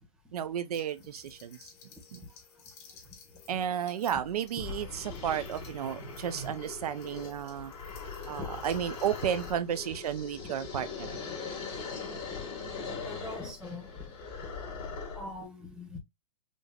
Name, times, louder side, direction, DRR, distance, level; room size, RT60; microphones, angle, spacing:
voice 1, 0.3-1.6 2.1-2.2 3.5-7.7 8.3-11.2, right 9 dB, 80° right, 0.8 m, -33 dB
sound 1, 0.7-9.6, left 6 dB, 45° left, 2.0 m, -56 dB
sound 2, 4.6-15.4, left 4 dB, 30° left, 2.4 m, -41 dB
voice 2, 13.0-13.9 15.1-16.0, left 2 dB, 5° right, 1.5 m, -43 dB
5.3 x 3.1 x 2.4 m
hypercardioid pair, 145°, 19 cm